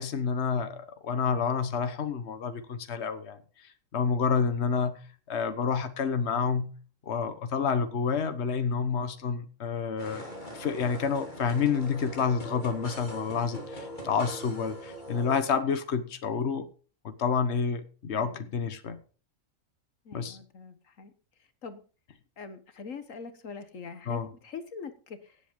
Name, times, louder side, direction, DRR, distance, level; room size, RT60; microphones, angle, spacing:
voice 1, 0.0-5.0 5.3-6.7 7.1-10.3 10.5-16.7 17.0-19.0 20.1-20.4 24.1-24.3, left 6 dB, 55° left, 9 dB, 1.5 m, -29 dB
sound 1, 10.0-15.4, equal, 35° left, 3.7 m, -41 dB
voice 2, 18.1-18.5 20.0-21.1 21.6-21.8 22.4-25.4, left 5 dB, 75° left, 10 dB, 1.6 m, -43 dB
17.5 x 8.0 x 5.3 m, 0.39 s
omnidirectional pair, 1.4 m